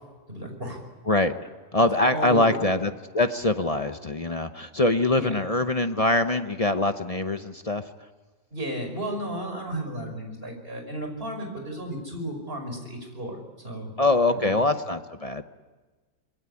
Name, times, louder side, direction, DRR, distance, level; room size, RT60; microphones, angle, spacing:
voice 1, 0.3-0.8 2.1-2.7 5.2-5.4 8.5-13.4 13.6-13.9 14.3-14.6, right 1 dB, 35° right, 4 dB, 5.8 m, -34 dB
voice 2, 1.7-7.8 14.0-15.4, left 2 dB, 35° left, 8 dB, 0.6 m, -23 dB
25.5 x 22.0 x 9.8 m, 1.3 s
omnidirectional pair, 1.8 m